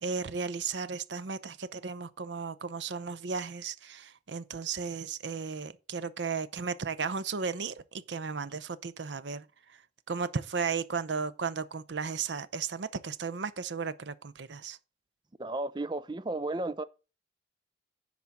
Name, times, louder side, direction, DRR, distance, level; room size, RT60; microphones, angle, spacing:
voice 1, 0.0-9.5 10.1-14.8, right 5 dB, 80° right, 0.7 m, -35 dB
voice 2, 15.4-16.8, right 2 dB, 25° right, 0.5 m, -33 dB
10.5 x 4.0 x 7.1 m
head